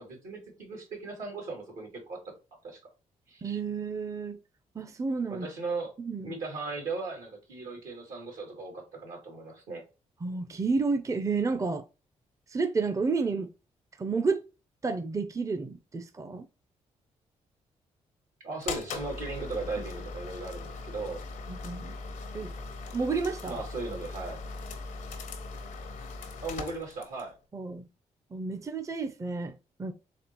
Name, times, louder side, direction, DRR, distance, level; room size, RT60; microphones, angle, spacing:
voice 1, 0.0-2.3 2.6-2.8 3.3-3.4 5.3-5.9 6.2-9.8 18.4-21.2 23.5-24.4 26.4-27.4, right 3 dB, 85° right, 2.2 m, -37 dB
voice 2, 3.4-4.4 4.7-5.5 6.0-6.4 10.2-11.8 12.5-13.5 14.0-14.4 14.8-16.5 21.5-22.0 22.3-22.5 22.9-23.7 27.5-27.9 28.3-29.5 29.8-29.9, right 4 dB, 25° right, 0.5 m, -31 dB
sound 1, 18.6-27.3, left 3 dB, 85° left, 0.8 m, -40 dB
4.2 x 3.2 x 2.9 m
supercardioid pair, 60°, 13 cm